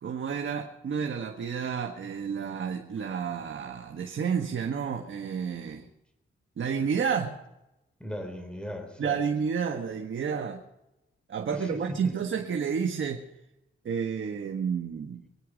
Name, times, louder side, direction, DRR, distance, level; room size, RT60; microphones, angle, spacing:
voice 1, 0.0-5.8 6.6-7.4 9.0-10.6 11.3-13.2 13.8-15.2, right 6 dB, 70° right, 3 dB, 1.4 m, -30 dB
voice 2, 8.0-9.2 11.5-12.5, equal, 5° left, 6 dB, 3.9 m, -38 dB
23.5 x 9.6 x 5.2 m, 0.92 s
cardioid pair, 70°, 21 cm